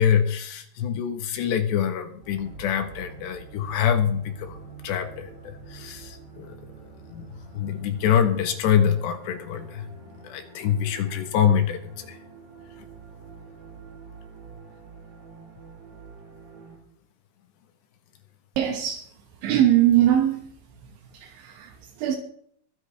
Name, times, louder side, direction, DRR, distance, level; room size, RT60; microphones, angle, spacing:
voice 1, 0.0-4.6 4.8-6.5 7.1-7.2 7.5-9.9 10.2-12.2, left 8 dB, 70° left, 3.2 m, -25 dB
sound 1, 2.2-16.8, right 5 dB, 60° right, 5.4 m, -46 dB
voice 2, 18.6-19.1 19.4-20.4 21.1-22.2, right 11 dB, 75° right, 3.6 m, -21 dB
22.5 x 9.1 x 3.4 m
omnidirectional pair, 5.4 m